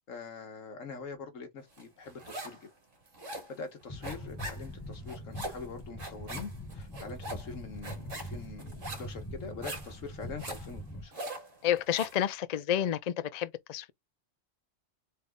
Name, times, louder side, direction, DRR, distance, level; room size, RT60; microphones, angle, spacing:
voice 1, 0.1-2.6 3.3-11.1, left 4 dB, 85° left, 1.6 m, -44 dB
sound 1, 1.8-2.7 2.9-12.2, right 1 dB, 75° right, 2.3 m, -42 dB
sound 2, 3.9-11.1, equal, 15° left, 1.0 m, -43 dB
voice 2, 11.6-13.9, left 10 dB, 60° left, 0.4 m, -30 dB
4.1 x 3.5 x 3.6 m
omnidirectional pair, 1.3 m